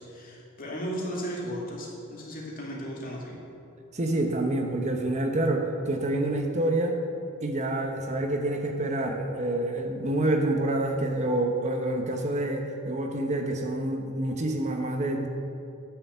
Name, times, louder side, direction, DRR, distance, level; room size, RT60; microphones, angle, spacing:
voice 1, 0.0-3.4, equal, 45° left, -3 dB, 2.4 m, -35 dB
voice 2, 3.9-7.0 7.4-15.3, right 1 dB, 35° right, 3 dB, 0.9 m, -27 dB
11.0 x 6.9 x 6.8 m, 2.7 s
head